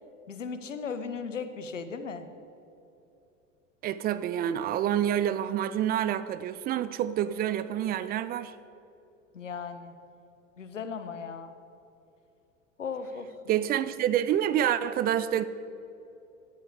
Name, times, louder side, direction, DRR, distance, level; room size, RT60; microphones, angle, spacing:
voice 1, 0.3-2.3 9.3-9.9 10.6-11.5 12.8-13.3, left 5 dB, 75° left, 1.2 m, -36 dB
voice 2, 3.8-8.5 13.5-15.4, right 10 dB, 25° right, 0.5 m, -27 dB
17.5 x 12.0 x 4.9 m
figure-of-eight pair, 85°, 38 cm